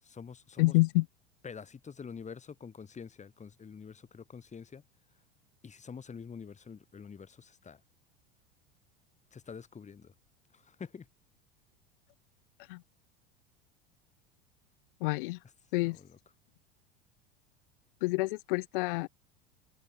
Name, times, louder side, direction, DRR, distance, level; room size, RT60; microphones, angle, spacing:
voice 1, 0.0-0.7 1.4-4.8 5.6-7.8 9.3-10.1 10.5-11.1 15.8-16.2, left 6 dB, 20° left, 4.3 m, -46 dB
voice 2, 0.6-1.1 12.7-12.8 15.0-15.4 15.7-16.0 18.0-19.1, left 23 dB, 50° left, 0.6 m, -28 dB
open air
figure-of-eight pair, 75°, 36 cm